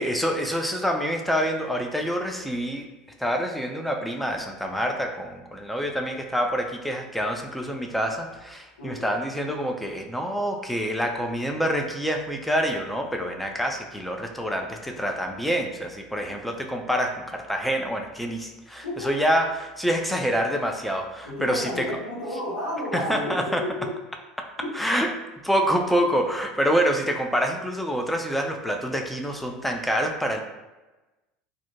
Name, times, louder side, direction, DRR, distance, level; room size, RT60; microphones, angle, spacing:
voice 1, 0.0-2.9 3.2-21.9 22.9-23.6 24.7-25.1 25.4-30.4, equal, ahead, 2 dB, 0.3 m, -26 dB
voice 2, 8.8-9.2 18.8-19.1 21.3-23.9 24.6-24.8, left 1 dB, 85° left, -5 dB, 0.6 m, -32 dB
2.5 x 2.1 x 2.5 m, 1.1 s
hypercardioid pair, 75°, 4 cm